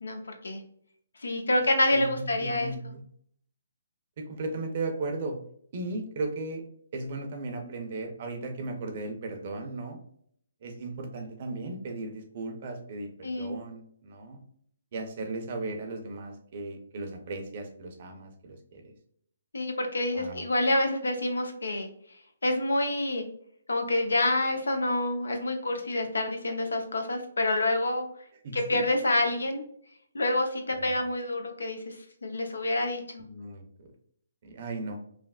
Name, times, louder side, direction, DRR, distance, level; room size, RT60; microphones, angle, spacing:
voice 1, 0.0-0.6 1.2-2.7 13.2-13.6 19.5-21.9 22.4-23.3 23.7-28.1 28.5-29.6 30.1-31.9 32.2-33.2, left 1 dB, 90° left, 5 dB, 0.6 m, -27 dB
voice 2, 1.9-3.0 4.2-5.4 5.7-6.6 6.9-10.0 10.6-14.4 14.9-18.9 20.1-20.4 28.4-28.8 30.8-31.0 33.2-33.9 34.4-35.0, right 2 dB, 45° right, 4 dB, 0.6 m, -36 dB
3.2 x 2.0 x 2.3 m, 0.65 s
hypercardioid pair, 150°, 0 cm